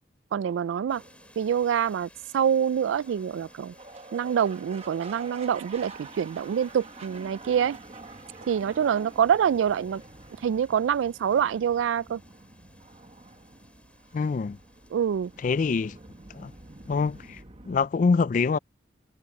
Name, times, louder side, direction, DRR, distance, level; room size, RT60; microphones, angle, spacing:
voice 1, 0.3-1.0 1.4-2.1 2.3-3.7 4.1-7.8 8.5-10.0 10.4-12.2 14.9-15.3, right 8 dB, 90° right, 0.3 m, -25 dB
sound 1, 0.8-17.9, right 3 dB, 35° right, 1.3 m, -48 dB
sound 2, 0.9-17.4, left 2 dB, 5° left, 7.9 m, -59 dB
voice 2, 14.1-14.6 15.4-15.9 16.4-16.5 16.9-17.2 17.7-18.6, left 4 dB, 45° left, 0.3 m, -24 dB
head